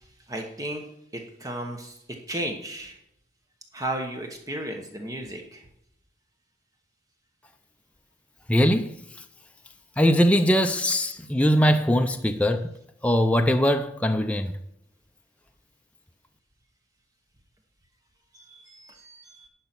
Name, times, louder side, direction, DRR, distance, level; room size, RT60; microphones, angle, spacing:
voice 1, 0.3-0.8 1.1-2.0 2.3-3.0 3.7-5.7 18.3-19.5, right 1 dB, 20° right, 1.0 m, -34 dB
voice 2, 8.5-8.9 10.0-12.7 13.0-14.5, equal, 5° left, 0.4 m, -21 dB
11.0 x 5.8 x 5.9 m
head